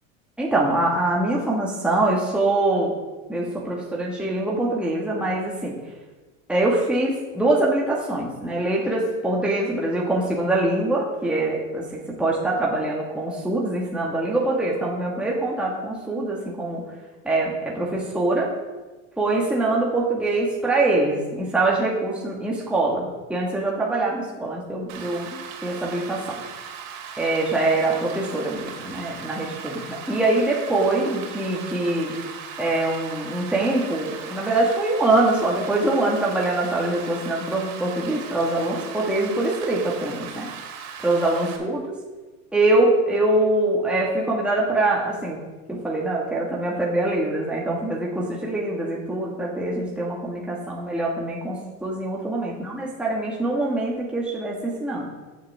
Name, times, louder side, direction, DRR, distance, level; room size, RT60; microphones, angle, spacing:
voice 1, 0.4-3.0 3.3-5.8 6.5-16.8 17.2-18.5 19.2-26.4 27.2-32.2 32.6-40.5 41.0-42.0 42.5-45.4 45.7-55.1, right 2 dB, 5° right, -4 dB, 1.7 m, -24 dB
Rain, 24.9-41.6, right 7 dB, 70° right, 2.3 m, -38 dB
12.5 x 7.3 x 3.6 m, 1.2 s
supercardioid pair, 110°, 40 cm